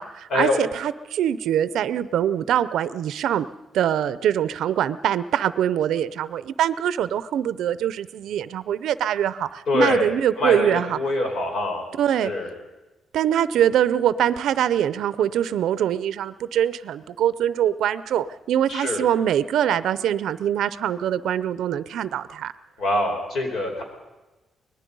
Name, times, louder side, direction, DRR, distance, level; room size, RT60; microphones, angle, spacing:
voice 1, 0.0-3.5 3.7-11.0 12.0-12.3 13.1-22.5, right 10 dB, 85° right, 16 dB, 0.6 m, -23 dB
voice 2, 9.7-10.1 10.4-11.8 12.2-12.5 18.7-19.1 22.8-23.8, left 2 dB, 55° left, 3 dB, 4.4 m, -24 dB
24.5 x 19.5 x 5.4 m, 1.1 s
wide cardioid pair, 175°, 0 cm